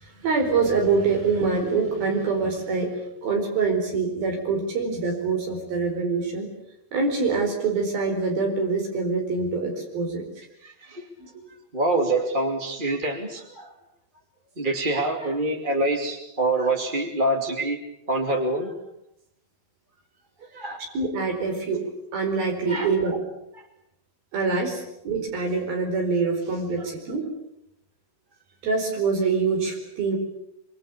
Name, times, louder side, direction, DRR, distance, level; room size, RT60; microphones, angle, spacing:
voice 1, 0.0-2.9 3.2-6.5 6.9-10.2 11.2-11.4 20.8-23.2 24.3-27.3 28.6-30.2, right 4 dB, 70° right, 2 dB, 6.4 m, -25 dB
voice 2, 10.6-11.1 11.7-13.7 14.6-17.8 18.1-18.7 20.5-20.8 22.7-22.9, right 2 dB, 15° right, 2 dB, 2.2 m, -25 dB
26.0 x 24.5 x 8.6 m, 0.80 s
omnidirectional pair, 4.4 m